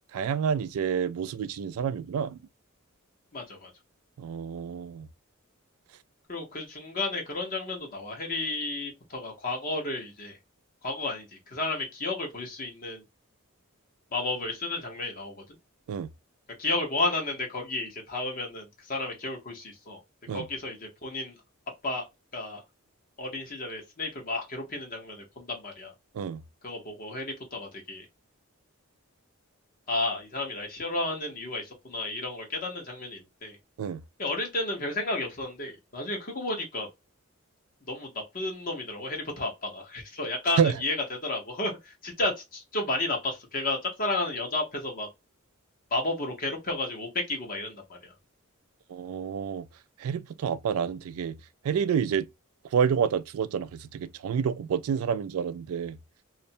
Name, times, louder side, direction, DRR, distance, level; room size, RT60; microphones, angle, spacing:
voice 1, 0.1-2.4 4.2-5.1 15.9-16.1 20.3-20.5 26.1-26.4 33.8-34.0 40.6-40.8 48.9-49.7 50.0-51.4 51.6-52.3 52.7-56.0, right 7 dB, 80° right, 0.3 m, -28 dB
voice 2, 3.3-3.7 6.3-10.4 10.8-13.0 14.1-15.4 16.6-20.0 20.3-21.4 21.8-22.0 22.3-22.6 23.2-25.9 26.6-28.0 29.9-33.6 34.2-36.9 37.9-41.0 41.2-45.1 45.9-48.1, left 2 dB, 45° left, 0.9 m, -32 dB
2.5 x 2.1 x 2.6 m
head